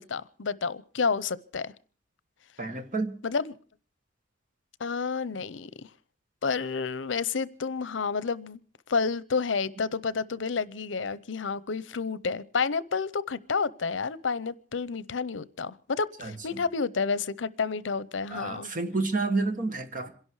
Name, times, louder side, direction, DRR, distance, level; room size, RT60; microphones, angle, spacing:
voice 1, 0.0-1.7 3.2-3.5 4.8-5.7 6.4-8.6 8.9-18.7, left 5 dB, 80° left, 0.7 m, -30 dB
voice 2, 2.6-3.1 16.2-16.3 18.3-20.1, right 3 dB, 45° right, 1.8 m, -29 dB
27.0 x 11.5 x 4.7 m
head